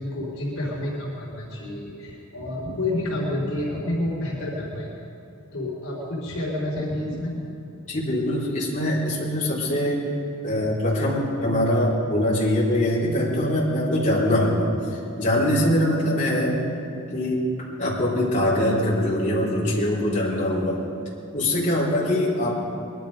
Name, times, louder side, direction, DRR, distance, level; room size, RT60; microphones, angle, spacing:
voice 1, 0.0-4.9 5.5-7.3 7.9-8.0, left 1 dB, 75° left, -6 dB, 3.7 m, -29 dB
voice 2, 7.9-10.0 10.4-14.7 15.2-16.6 17.1-17.4 17.8-20.8 21.3-22.5, left 1 dB, 35° left, -8 dB, 4.3 m, -23 dB
21.5 x 11.5 x 5.2 m, 2.7 s
head